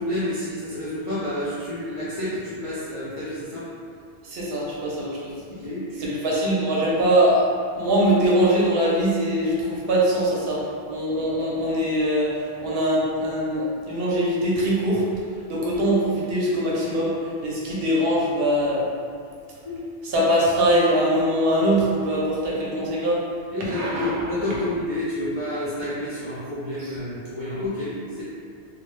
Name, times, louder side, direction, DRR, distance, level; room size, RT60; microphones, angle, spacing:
voice 1, 0.0-3.7 5.5-6.2 19.7-19.8 23.5-28.2, left 1 dB, 55° left, -11 dB, 0.3 m, -29 dB
voice 2, 4.2-5.4 6.0-15.0 15.5-17.2 17.4-18.8 20.0-23.2 23.7-24.1, right 1 dB, 70° right, -6 dB, 0.7 m, -22 dB
2.0 x 2.0 x 3.0 m, 2.3 s
omnidirectional pair, 1.1 m